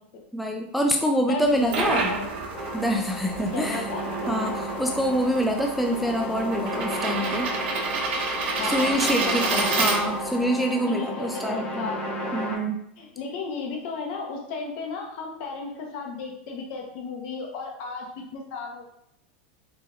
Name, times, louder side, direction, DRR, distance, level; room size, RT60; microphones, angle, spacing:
voice 1, 0.3-2.1 2.7-3.9 4.3-7.5 8.6-11.9 12.3-12.8, equal, ahead, 2 dB, 0.3 m, -26 dB
voice 2, 1.3-2.2 3.5-4.0 8.6-9.9 10.9-12.0 13.0-18.1 18.3-18.9, left 4 dB, 60° left, 1 dB, 1.1 m, -33 dB
sound 1, 1.4-10.4, right 4 dB, 80° right, 1.1 m, -30 dB
sound 2, 2.5-12.6, equal, 15° left, 0.8 m, -33 dB
3.9 x 3.9 x 2.6 m, 0.76 s
supercardioid pair, 135°, 6 cm